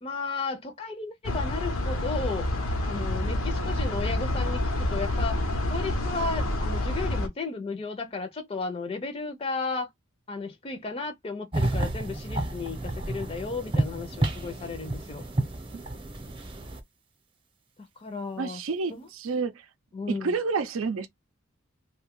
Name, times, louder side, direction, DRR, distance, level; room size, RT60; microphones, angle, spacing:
voice 1, 0.0-2.5 2.8-5.4 5.7-9.9 10.3-15.2 18.0-18.6 18.9-19.1 19.9-20.3, left 4 dB, 30° left, 0.5 m, -34 dB
sound 1, 1.2-7.3, left 1 dB, 85° left, 0.8 m, -28 dB
sound 2, 11.5-16.8, right 2 dB, 25° right, 0.7 m, -30 dB
voice 2, 18.4-19.6 20.1-21.1, right 4 dB, 75° right, 0.5 m, -29 dB
2.6 x 2.2 x 3.5 m
head